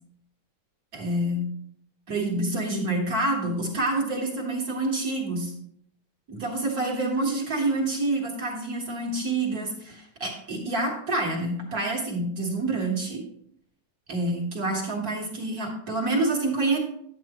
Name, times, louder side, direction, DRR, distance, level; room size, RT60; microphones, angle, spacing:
voice 1, 0.9-1.5 2.1-5.5 6.3-13.2 14.1-16.8, right 2 dB, 40° right, -1 dB, 1.6 m, -27 dB
9.6 x 9.3 x 3.0 m, 0.68 s
omnidirectional pair, 3.4 m